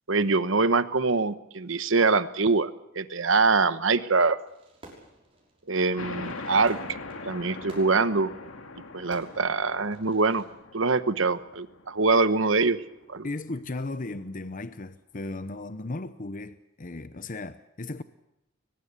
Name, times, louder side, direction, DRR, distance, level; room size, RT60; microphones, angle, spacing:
voice 1, 0.1-2.7 2.9-4.4 5.7-6.8 7.2-8.3 8.9-10.4 10.7-12.8 13.1-13.3, right 4 dB, 65° right, 1.1 m, -24 dB
Fireworks, 4.5-10.5, right 1 dB, 30° right, 5.9 m, -52 dB
sound 1, 6.0-13.1, left 3 dB, 80° left, 2.1 m, -42 dB
voice 2, 13.2-18.0, left 2 dB, 40° left, 0.8 m, -36 dB
22.5 x 21.0 x 6.8 m
head